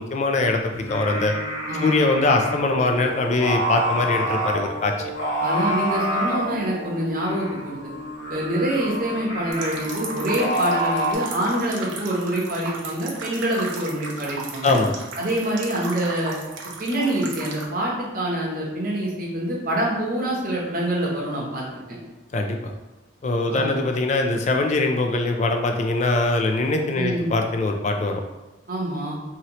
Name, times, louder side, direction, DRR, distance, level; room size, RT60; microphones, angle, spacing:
voice 1, 0.0-1.3 1.8-4.9 14.6-14.9 22.3-22.7 23.2-28.2, left 2 dB, 35° left, 4 dB, 0.3 m, -22 dB
Singing, 0.7-11.1, equal, 70° left, 0.9 m, -28 dB
voice 2, 1.7-2.0 5.4-7.9 8.3-14.8 15.2-16.3 16.8-22.0 23.4-23.8 26.9-27.3 28.7-29.2, right 1 dB, 45° right, -3 dB, 0.8 m, -26 dB
sound 1, 9.5-17.7, right 3 dB, 75° right, 0.5 m, -35 dB
2.8 x 2.7 x 2.9 m, 1.1 s
head